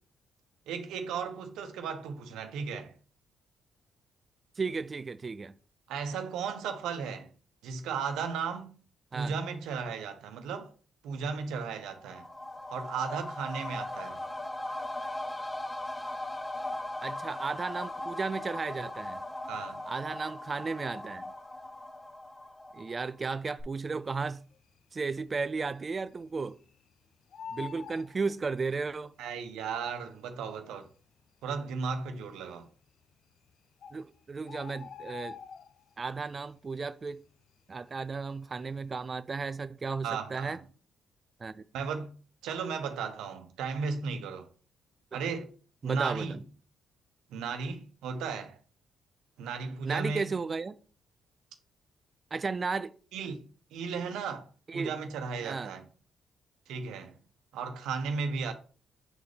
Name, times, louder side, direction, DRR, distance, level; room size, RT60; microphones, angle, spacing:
voice 1, 0.7-2.9 5.9-7.3 7.6-8.8 9.1-10.7 11.0-12.3 12.7-14.2 19.5-19.8 29.2-30.9 31.4-32.7 40.0-40.6 41.7-42.1 42.4-44.5 45.1-45.5 45.8-46.4 47.3-48.6 49.4-50.3 53.1-53.4 53.7-55.8 56.7-57.1 57.5-58.5, right 5 dB, 90° right, 0.9 m, -35 dB
voice 2, 4.6-5.5 9.1-9.3 17.0-19.2 19.9-21.2 22.7-24.4 24.9-26.6 27.5-29.1 33.9-35.4 36.0-37.2 37.7-40.6 41.4-41.6 45.1-45.2 45.8-46.4 49.8-50.7 52.3-52.9 54.7-55.0 55.4-55.7, right 4 dB, 35° right, 0.3 m, -34 dB
sound 1, 11.8-23.3 23.6-23.7, left 1 dB, 20° left, 1.0 m, -39 dB
Bird, 24.4-25.0 25.3-25.4 25.7-26.9 27.1-29.0 29.8-29.9 30.6-30.7 30.8-31.0 31.6-32.1 33.0-33.1 33.5-33.6 33.8-36.1 36.4-36.8 37.1-38.4 38.8-39.0, left 7 dB, 60° left, 0.5 m, -46 dB
7.1 x 4.0 x 3.3 m
cardioid pair, 90°, 0 cm